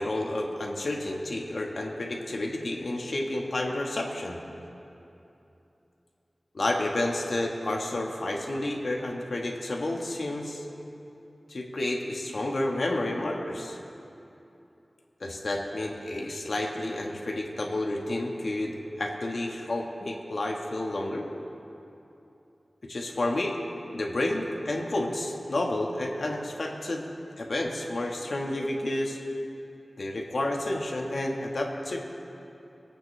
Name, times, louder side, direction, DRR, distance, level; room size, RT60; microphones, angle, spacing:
voice 1, 0.0-4.4 6.5-10.6 11.5-13.8 15.2-21.3 22.8-23.6 23.9-27.1 27.4-29.2 30.0-32.0, left 1 dB, 75° left, 0 dB, 1.4 m, -30 dB
23.5 x 8.7 x 3.3 m, 2.9 s
wide cardioid pair, 50°, 0 cm